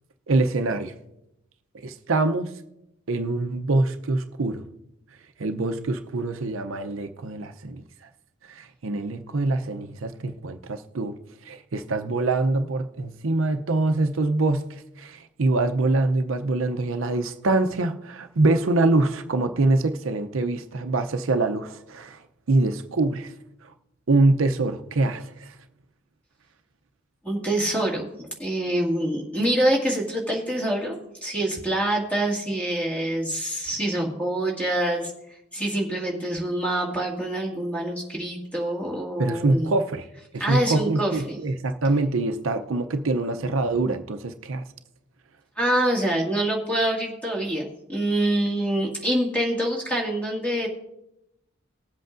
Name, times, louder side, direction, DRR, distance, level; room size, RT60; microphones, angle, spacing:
voice 1, 0.3-0.9 1.7-2.5 3.1-4.6 5.4-7.8 8.5-11.2 11.4-22.2 22.5-23.3 23.6-23.7 24.1-25.5 39.2-40.1 40.3-44.6, right 2 dB, 75° right, 0.6 m, -24 dB
voice 2, 27.2-35.1 35.5-39.7 40.4-41.4 45.6-50.7, right 1 dB, 5° left, 2.0 m, -26 dB
19.5 x 7.9 x 2.6 m
head